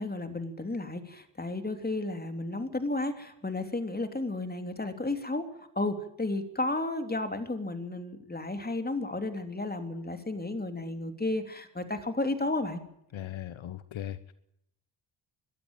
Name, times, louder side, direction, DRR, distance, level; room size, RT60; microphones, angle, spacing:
voice 1, 0.0-5.5 5.7-12.8, left 2 dB, 20° left, 7 dB, 3.1 m, -33 dB
voice 2, 13.1-14.3, left 11 dB, 70° left, 13 dB, 1.2 m, -38 dB
22.0 x 13.0 x 9.1 m, 0.78 s
cardioid pair, 65°, 49 cm